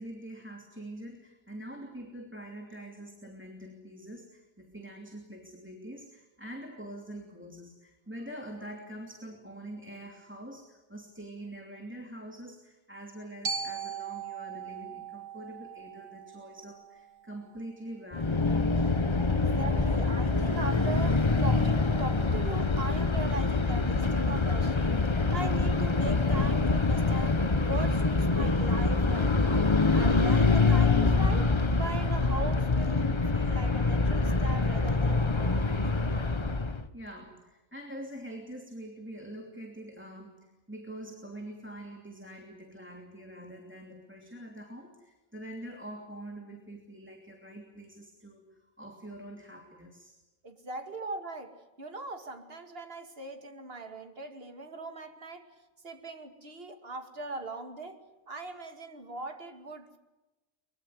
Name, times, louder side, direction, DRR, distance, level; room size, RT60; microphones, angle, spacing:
voice 1, 0.0-18.5 36.9-50.1, right 1 dB, 10° right, 2 dB, 2.8 m, -45 dB
Glockenspiel, 13.4-17.6, right 6 dB, 80° right, 2.4 m, -39 dB
sound 1, 18.1-36.9, left 3 dB, 25° left, 1.1 m, -25 dB
voice 2, 19.6-29.6 29.9-35.9 50.4-55.5 55.8-58.0 58.3-60.0, right 2 dB, 45° right, 6 dB, 2.7 m, -40 dB
23.5 x 23.0 x 8.0 m, 1.1 s
omnidirectional pair, 1.4 m